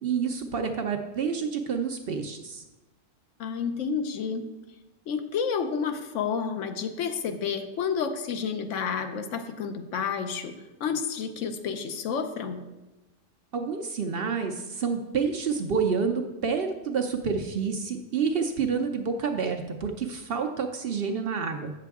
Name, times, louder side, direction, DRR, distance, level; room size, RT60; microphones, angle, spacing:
voice 1, 0.0-2.6 13.5-21.7, right 5 dB, 60° right, 4 dB, 0.7 m, -28 dB
voice 2, 3.4-4.5 5.1-12.6, left 6 dB, 75° left, 8 dB, 1.0 m, -30 dB
8.3 x 6.7 x 3.5 m, 1.1 s
omnidirectional pair, 1.3 m